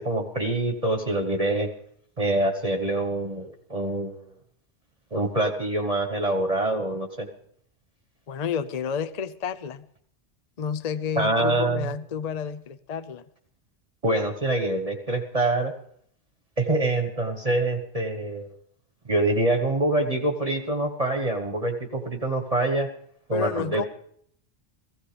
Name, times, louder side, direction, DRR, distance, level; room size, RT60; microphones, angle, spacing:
voice 1, 0.0-1.7 2.2-4.2 5.1-7.3 11.2-11.9 14.0-15.7 16.6-18.5 19.0-22.9 23.3-23.9, right 2 dB, 35° right, 4 dB, 1.3 m, -25 dB
voice 2, 8.3-9.9 10.6-13.3 23.3-23.9, left 7 dB, 40° left, 13 dB, 0.7 m, -30 dB
16.0 x 15.5 x 5.1 m, 0.65 s
omnidirectional pair, 1.1 m